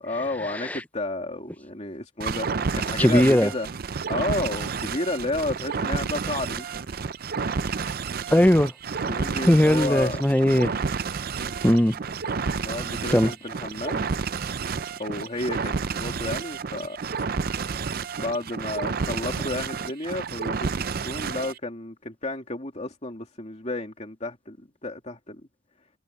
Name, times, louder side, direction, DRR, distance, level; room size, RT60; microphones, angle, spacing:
voice 1, 0.0-3.7 4.1-6.7 9.1-10.2 12.6-14.1 15.0-17.1 18.2-25.4, left 2 dB, 35° left, 2.6 m, -32 dB
sound 1, 2.2-21.6, right 5 dB, 50° right, 0.5 m, -30 dB
voice 2, 3.0-3.5 8.3-8.7 9.4-10.7 11.6-11.9 13.1-13.3, left 1 dB, 10° left, 0.6 m, -19 dB
head